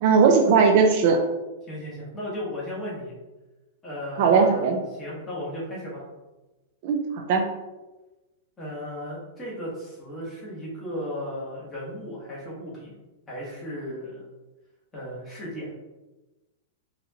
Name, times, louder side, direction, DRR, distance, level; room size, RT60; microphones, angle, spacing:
voice 1, 0.0-1.2 4.2-4.8 6.8-7.5, right 5 dB, 45° right, 3 dB, 0.4 m, -19 dB
voice 2, 1.7-3.1 3.8-4.7 5.0-6.0 8.6-12.9 13.3-14.2 14.9-15.7, equal, 15° left, -6 dB, 1.2 m, -35 dB
4.1 x 2.5 x 2.8 m, 1.1 s
supercardioid pair, 165°, 0 cm